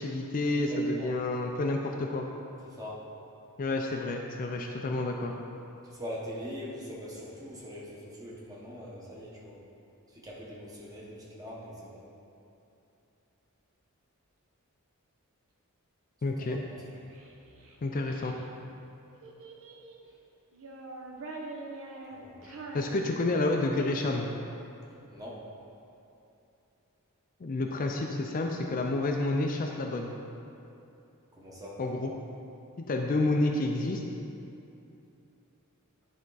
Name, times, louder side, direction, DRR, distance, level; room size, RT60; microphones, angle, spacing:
voice 1, 0.0-2.3 3.6-5.3 16.2-16.6 17.8-18.4 22.4-24.3 27.4-30.1 31.8-32.1 32.8-34.0, left 2 dB, 40° left, 2 dB, 0.4 m, -29 dB
voice 2, 0.7-1.1 2.6-3.1 5.8-9.6 10.1-12.0 16.4-16.7 22.1-22.4 25.1-25.4 31.3-31.8, equal, 15° right, -5 dB, 1.1 m, -42 dB
Child speech kid speaking, 16.8-18.4 19.2-20.1 20.5-23.7, right 2 dB, 65° right, 0.8 m, -44 dB
10.5 x 3.6 x 4.0 m, 2.8 s
head